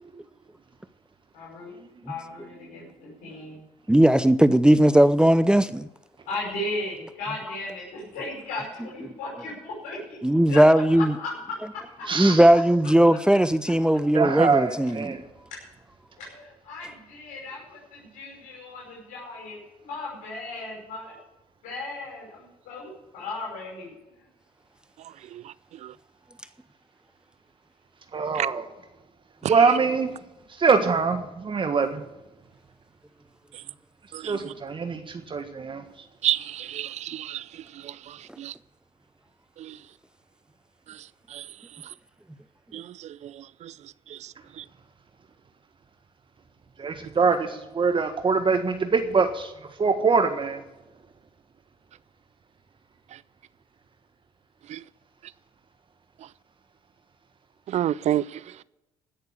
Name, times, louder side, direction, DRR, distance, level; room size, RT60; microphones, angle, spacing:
voice 1, 1.3-1.8 2.1-3.6 6.3-12.1 16.2-21.2 21.6-24.2, left 2 dB, 75° left, 5.5 m, -36 dB
voice 2, 3.9-5.9 10.2-11.1 12.2-15.2, right 1 dB, 5° right, 0.6 m, -18 dB
voice 3, 12.1-12.4 14.1-15.2 28.1-28.7 29.5-30.1 30.6-32.0 34.2-35.8 46.8-47.5 47.7-49.5 49.8-50.6, right 5 dB, 35° right, 1.6 m, -23 dB
voice 4, 34.1-34.5 36.2-37.4 37.8-38.5 39.6-39.8 41.3-41.4 42.7-42.9 43.2-43.3 43.6-43.7 44.1-44.2 44.6-44.7 54.7-54.8 57.7-58.2, right 12 dB, 55° right, 0.5 m, -29 dB
16.0 x 6.7 x 8.4 m
supercardioid pair, 70°, 14 cm